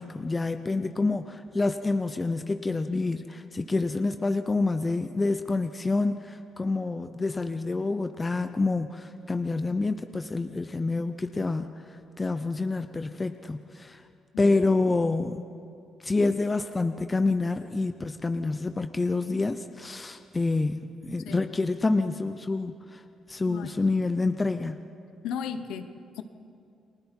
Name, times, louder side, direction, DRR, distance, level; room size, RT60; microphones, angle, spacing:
voice 1, 0.0-14.0 14.4-15.5 16.0-23.0 23.3-24.8, left 3 dB, 25° left, 8 dB, 0.7 m, -27 dB
voice 2, 21.2-21.5 23.5-23.8 25.2-25.9 26.1-26.2, left 8 dB, 85° left, 10 dB, 1.1 m, -35 dB
29.5 x 20.5 x 4.6 m, 2.5 s
cardioid pair, 90°, 0 cm